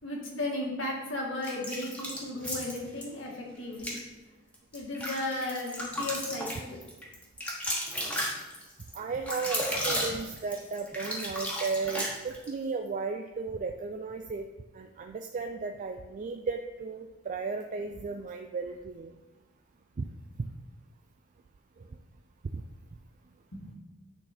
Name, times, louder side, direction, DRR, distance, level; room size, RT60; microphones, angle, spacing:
voice 1, 0.0-4.0 4.7-6.8 23.5-23.7, left 2 dB, 65° left, -1 dB, 1.7 m, -35 dB
sound 1, 1.4-3.1 3.7-4.0 4.5-12.5, equal, 5° left, 1.3 m, -34 dB
voice 2, 8.9-14.4 14.7-19.1 22.5-22.6, right 4 dB, 40° right, 4 dB, 0.3 m, -35 dB
9.1 x 4.0 x 4.3 m, 1.1 s
head